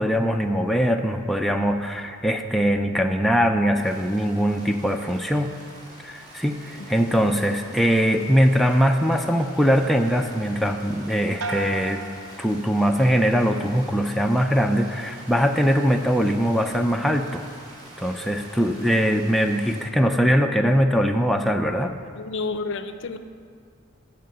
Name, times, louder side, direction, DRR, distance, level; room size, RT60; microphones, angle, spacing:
voice 1, 0.0-5.5 6.0-12.0 12.4-17.4 18.0-21.9, equal, ahead, 3 dB, 0.3 m, -21 dB
sound 1, 3.8-19.8, right 1 dB, 30° right, 2.4 m, -45 dB
sound 2, 11.4-13.1 13.5-14.1, right 3 dB, 85° right, 0.7 m, -36 dB
voice 2, 22.1-23.2, left 3 dB, 60° left, 10 dB, 0.5 m, -30 dB
9.1 x 5.7 x 7.7 m, 2.2 s
head